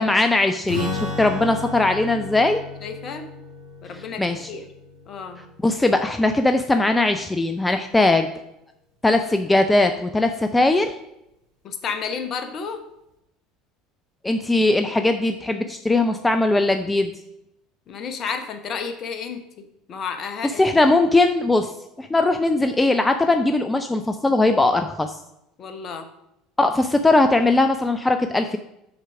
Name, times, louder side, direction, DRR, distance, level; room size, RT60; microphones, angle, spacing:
voice 1, 0.0-2.6 4.2-4.5 5.6-8.3 9.0-10.9 14.2-17.1 20.6-21.7 22.0-25.2 26.6-28.6, left 2 dB, 10° left, 7 dB, 0.5 m, -19 dB
Strum, 0.7-6.3, left 2 dB, 80° right, 2.8 m, -34 dB
voice 2, 2.8-3.2 3.8-4.6 5.1-5.4 11.6-12.8 17.9-20.7 25.6-26.1, left 6 dB, 40° left, 7 dB, 1.0 m, -32 dB
6.5 x 4.6 x 6.0 m, 0.84 s
figure-of-eight pair, 65°, 0 cm